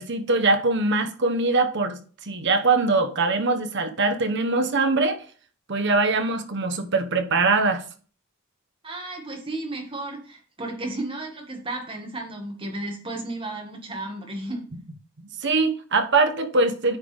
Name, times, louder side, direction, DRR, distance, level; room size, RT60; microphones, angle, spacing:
voice 1, 0.0-5.2 5.7-7.8 15.4-17.0, right 3 dB, 55° right, 1.0 m, -22 dB
voice 2, 8.8-14.7, right 2 dB, 25° right, 1.8 m, -33 dB
9.4 x 5.2 x 3.4 m
head